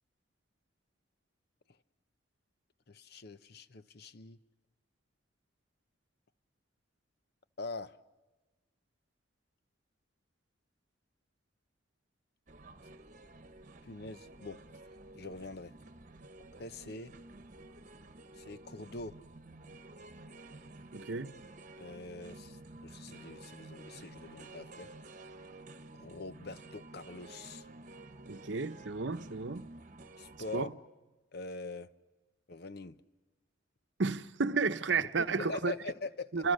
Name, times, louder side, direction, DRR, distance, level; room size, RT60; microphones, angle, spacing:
voice 1, 2.9-4.4 7.6-8.0 13.8-14.6 15.1-15.7 16.6-17.1 18.4-19.2 21.8-24.9 25.9-27.6 30.2-30.7 31.3-31.9 32.5-33.0 35.0-36.5, left 3 dB, 55° left, 0.8 m, -43 dB
sound 1, 12.5-30.7, right 2 dB, 40° right, 1.2 m, -52 dB
voice 2, 20.9-21.3 28.3-29.7 30.5-30.7 34.0-35.7 36.3-36.5, right 4 dB, 65° right, 0.8 m, -32 dB
30.0 x 27.0 x 6.5 m
head